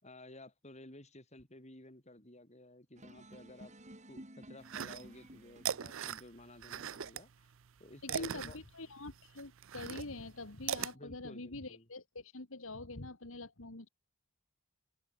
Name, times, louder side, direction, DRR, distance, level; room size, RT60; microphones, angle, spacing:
voice 1, 0.0-3.8 4.1-7.5 7.8-8.6 10.9-11.9, left 1 dB, 30° left, 5.5 m, -54 dB
sound 1, 3.0-5.9, right 1 dB, 35° right, 5.6 m, -53 dB
sound 2, 4.6-5.3 5.6-7.2 7.6-10.9, right 8 dB, 60° right, 0.6 m, -39 dB
voice 2, 8.0-13.9, left 2 dB, 65° left, 2.0 m, -45 dB
head